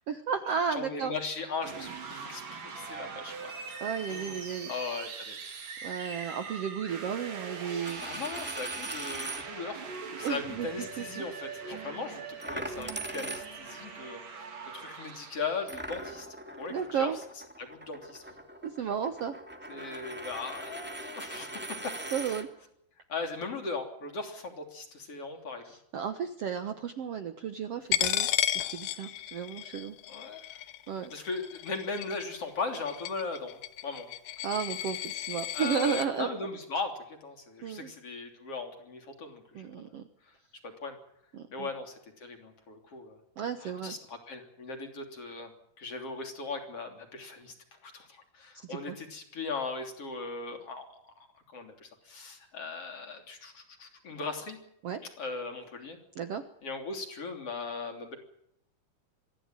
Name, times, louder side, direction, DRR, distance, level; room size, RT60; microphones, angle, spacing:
voice 1, 0.1-1.1 3.8-4.7 5.8-8.2 10.2-10.7 11.0-11.2 16.7-17.2 18.6-19.3 22.1-22.5 25.6-30.0 30.9-31.1 34.4-36.3 37.6-37.9 39.5-40.0 41.3-41.7 43.4-44.0 48.6-49.0 54.8-55.0 56.1-56.4, right 7 dB, 80° right, 9 dB, 1.3 m, -33 dB
voice 2, 0.7-3.5 4.1-4.4 4.7-5.4 8.0-9.8 10.2-16.3 16.6-17.1 17.6-18.2 19.7-22.0 23.1-25.6 30.1-30.4 31.1-34.1 35.5-39.7 40.6-41.0 41.5-43.2 43.6-45.5 45.8-47.5 47.8-51.1 51.5-54.6 55.2-56.0 56.6-58.2, left 4 dB, 40° left, 4 dB, 3.8 m, -38 dB
sound 1, 1.6-15.8, right 5 dB, 60° right, 4.4 m, -42 dB
Coin (dropping), 7.7-9.4 10.1-10.3 12.4-13.8 15.7-22.4, right 1 dB, 5° right, 0.8 m, -41 dB
Coin (dropping) 2, 27.9-36.1, left 14 dB, 70° left, 2.7 m, -34 dB
25.0 x 15.5 x 9.0 m, 0.75 s
omnidirectional pair, 4.5 m